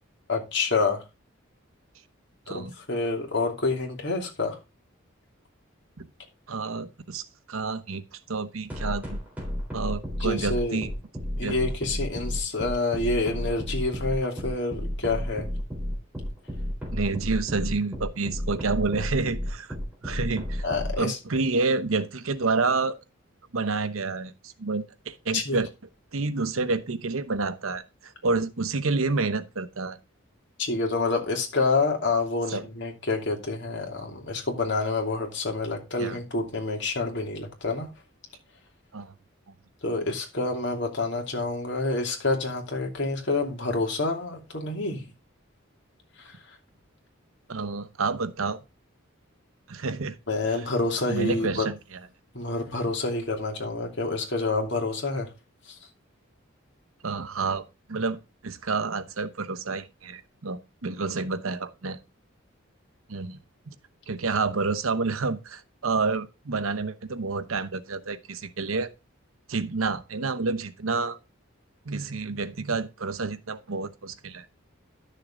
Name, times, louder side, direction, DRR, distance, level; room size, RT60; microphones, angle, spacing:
voice 1, 0.3-1.0 2.5-4.6 10.2-10.9 11.4-15.5 20.6-21.2 25.3-25.6 30.6-37.9 39.8-45.1 46.2-46.4 50.3-51.7 52.3-55.3 55.7-55.8, left 3 dB, 55° left, 2.8 m, -28 dB
voice 2, 6.5-7.2 7.5-9.2 9.7-10.9 11.4-11.6 16.9-19.8 20.0-20.7 21.0-23.0 23.5-25.7 26.1-30.0 32.5-32.6 36.0-36.2 38.9-39.1 39.5-39.6 47.5-48.6 49.7-50.2 50.5-50.7 51.1-52.0 57.0-58.2 58.4-62.0 63.1-63.4 63.7-63.8 64.1-68.9 69.5-71.2 71.8-74.5, right 4 dB, 85° right, 1.0 m, -29 dB
sound 1, 8.7-20.9, left 1 dB, 5° right, 3.7 m, -32 dB
11.5 x 6.7 x 3.8 m
head